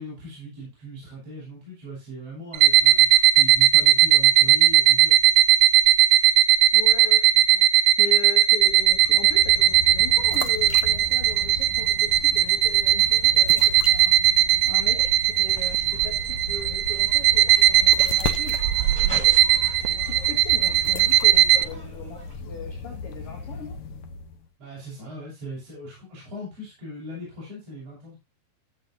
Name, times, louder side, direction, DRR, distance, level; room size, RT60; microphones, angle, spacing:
voice 1, 0.0-5.3 24.6-28.2, right 1 dB, 45° right, -7 dB, 7.5 m, -39 dB
sound 1, 2.5-21.7, right 13 dB, 80° right, 1.8 m, -18 dB
voice 2, 6.7-23.8, left 5 dB, 50° left, 1 dB, 2.4 m, -39 dB
sound 2, 8.6-24.5, left 4 dB, 80° left, 1.2 m, -36 dB
sound 3, 15.0-15.1 15.6-22.4, equal, 20° right, 7.8 m, -45 dB
14.5 x 7.8 x 2.8 m, 0.24 s
omnidirectional pair, 4.0 m